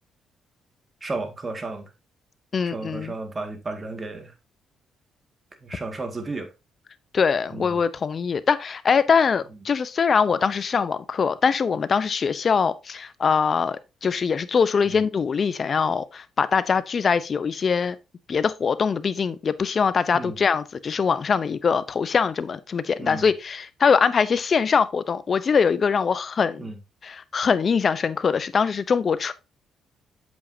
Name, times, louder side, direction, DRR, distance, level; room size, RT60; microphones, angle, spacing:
voice 1, 1.0-1.9 2.6-4.3 5.6-6.5 7.5-7.7 14.9-15.0 20.1-20.4 23.0-23.3 26.6-26.8, right 3 dB, 30° right, 2.1 m, -33 dB
voice 2, 2.5-3.1 7.1-18.0 18.3-26.7 27.0-29.3, left 6 dB, 45° left, 0.8 m, -22 dB
8.1 x 7.3 x 2.8 m
cardioid pair, 90°, 0 cm